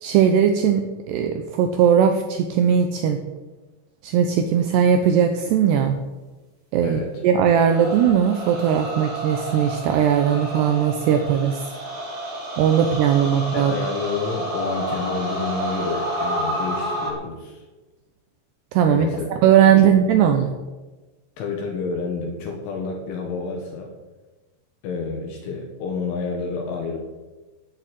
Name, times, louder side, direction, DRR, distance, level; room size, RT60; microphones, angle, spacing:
voice 1, 0.0-3.2 4.0-6.0 6.7-11.7 12.6-13.7 18.7-19.1 19.4-20.5, right 8 dB, 80° right, 6 dB, 2.4 m, -19 dB
voice 2, 6.8-7.2 13.5-17.7 18.9-19.3 19.8-19.9 20.2-20.4 21.4-23.9 24.8-27.0, left 4 dB, 70° left, 1 dB, 3.9 m, -29 dB
sound 1, 7.5-17.1, right 1 dB, 25° right, 2.5 m, -30 dB
13.5 x 7.7 x 9.3 m, 1.2 s
omnidirectional pair, 5.9 m